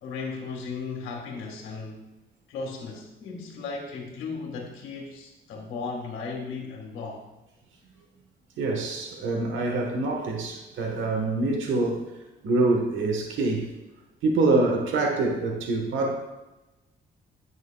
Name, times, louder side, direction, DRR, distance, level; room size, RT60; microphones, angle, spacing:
voice 1, 0.0-2.1 2.5-7.3, left 4 dB, 90° left, 0 dB, 1.7 m, -36 dB
voice 2, 8.6-12.0 12.4-13.7 14.2-16.2, right 2 dB, 80° right, 2 dB, 1.3 m, -25 dB
9.9 x 7.9 x 2.3 m, 1.0 s
cardioid pair, 90°, 20 cm